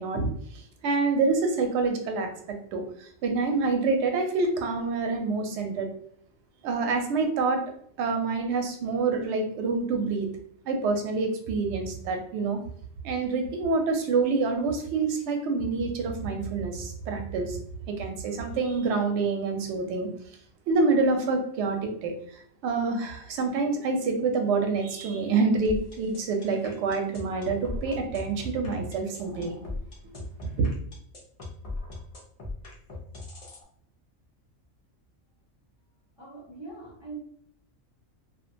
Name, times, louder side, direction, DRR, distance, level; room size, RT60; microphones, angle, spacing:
voice 1, 0.0-2.3 2.7-5.9 6.6-7.6 8.0-10.3 10.7-12.6 13.0-17.6 17.9-20.1 20.7-22.1 22.6-29.6 30.4-30.5, right 4 dB, 65° right, 4 dB, 0.8 m, -27 dB
sound 1, 25.6-33.6, left 2 dB, 55° left, 0.4 m, -38 dB
voice 2, 36.2-37.2, right 3 dB, 35° right, -6 dB, 0.4 m, -42 dB
2.4 x 2.2 x 2.6 m, 0.64 s
omnidirectional pair, 1.4 m